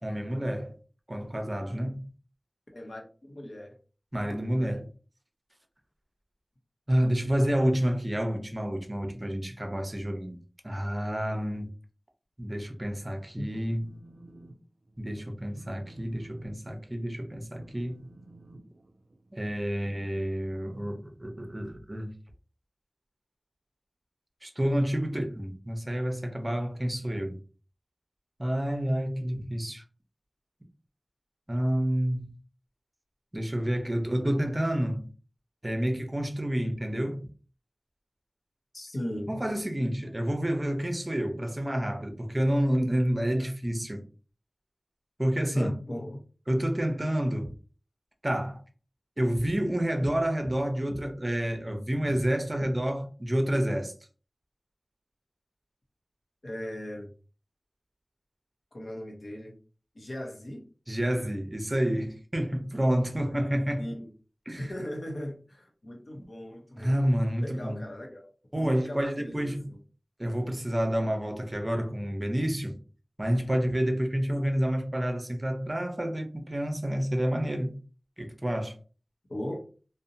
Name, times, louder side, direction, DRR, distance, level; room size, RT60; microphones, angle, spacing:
voice 1, 0.0-0.7 1.1-2.1 4.1-4.9 6.9-10.4 10.6-11.7 12.4-13.9 15.0-18.1 19.3-22.1 24.4-27.4 28.4-29.8 31.5-32.3 33.3-35.1 35.6-37.3 39.3-44.0 45.2-45.7 46.5-47.5 48.2-48.6 49.2-53.9 60.9-63.8 64.5-64.7 66.8-67.8 68.5-69.8 70.2-72.8 73.2-77.8 78.2-78.7, equal, 30° right, 0.6 m, -29 dB
voice 2, 2.7-3.7 4.3-4.7 13.4-13.5 38.7-39.3 45.5-46.2 56.4-57.1 58.7-59.6 59.9-60.6 63.3-63.4 63.8-64.1 64.6-67.0 67.4-69.8 79.3-79.6, left 1 dB, 65° left, 0.8 m, -38 dB
Telephone, 13.5-14.6 14.9-15.2 15.5-21.6, right 2 dB, 70° right, 0.3 m, -52 dB
2.7 x 2.1 x 2.6 m
wide cardioid pair, 55°, 0 cm